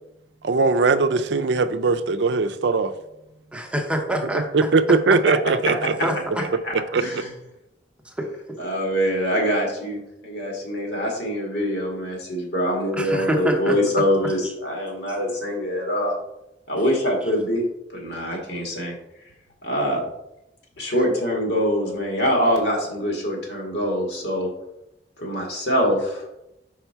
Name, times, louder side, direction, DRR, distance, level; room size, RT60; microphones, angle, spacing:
voice 1, 0.4-2.9 4.3-6.1 6.9-7.2, right 4 dB, 75° right, 0.5 m, -20 dB
voice 2, 3.5-4.7 6.0-6.4 8.1-8.6 12.9-13.8 14.4-14.5, equal, 5° right, 0.7 m, -26 dB
voice 3, 6.6-7.3 8.6-16.1 16.7-17.6 17.9-18.9 19.6-20.0 20.8-24.5 25.2-26.3, equal, 65° left, 2.0 m, -24 dB
5.5 x 4.8 x 4.6 m
head